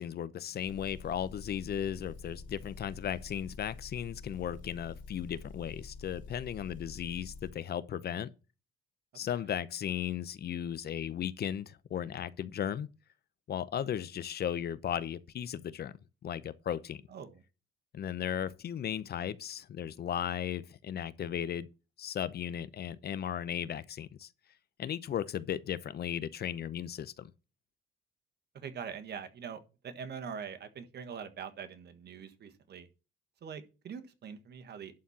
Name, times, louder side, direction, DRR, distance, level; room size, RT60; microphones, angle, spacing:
voice 1, 0.0-8.3 9.1-12.9 13.5-16.0 16.2-17.0 17.9-21.7 22.0-24.3 24.8-27.3, left 9 dB, 50° left, 0.7 m, -36 dB
Motor vehicle (road) / Engine, 0.6-7.5, left 4 dB, 70° left, 2.1 m, -47 dB
voice 2, 17.1-17.4 28.5-32.9 33.4-34.9, right 7 dB, 55° right, 1.5 m, -43 dB
11.5 x 4.2 x 7.3 m
cardioid pair, 100°, 21 cm